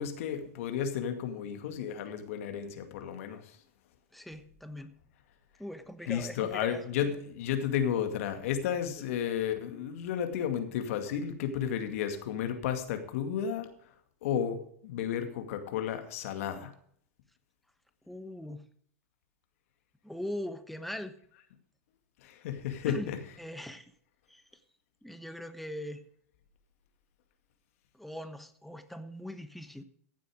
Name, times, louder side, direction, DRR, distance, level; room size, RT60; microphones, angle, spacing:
voice 1, 0.0-3.6 6.1-13.7 14.2-16.7 22.2-23.2, left 8 dB, 60° left, 7 dB, 2.2 m, -33 dB
voice 2, 4.1-4.9 5.6-6.8 18.1-18.7 20.0-21.1 22.9-23.1 23.4-23.9 24.3-24.4 25.0-26.0 27.9-29.8, left 1 dB, ahead, 9 dB, 1.1 m, -41 dB
15.0 x 7.6 x 5.0 m, 0.64 s
hypercardioid pair, 110°, 8 cm